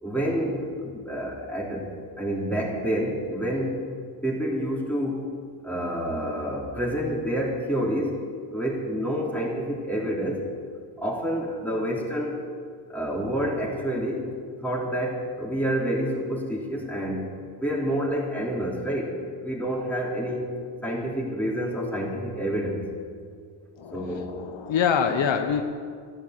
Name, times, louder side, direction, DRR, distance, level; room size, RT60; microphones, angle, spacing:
voice 1, 0.0-1.9 2.2-3.8 4.2-5.3 5.6-8.2 8.5-10.4 11.0-12.4 12.9-14.3 14.6-20.5 20.8-22.8 23.9-24.3, equal, 5° left, -3 dB, 3.2 m, -28 dB
voice 2, 23.8-25.6, left 7 dB, 65° left, 6 dB, 1.1 m, -25 dB
13.5 x 11.5 x 7.6 m, 2.1 s
cardioid pair, 110°, 48 cm